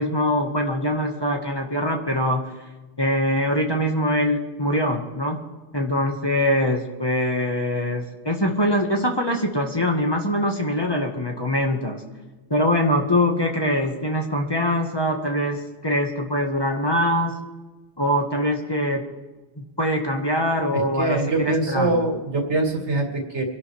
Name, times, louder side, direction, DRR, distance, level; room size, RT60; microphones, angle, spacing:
voice 1, 0.0-2.4 3.0-5.4 5.7-12.0 12.5-17.4 18.0-19.0 19.6-22.0, left 1 dB, 20° left, 1 dB, 1.5 m, -23 dB
voice 2, 20.7-23.4, right 2 dB, 70° right, 2 dB, 2.6 m, -23 dB
24.5 x 11.5 x 3.4 m, 1.2 s
omnidirectional pair, 1.2 m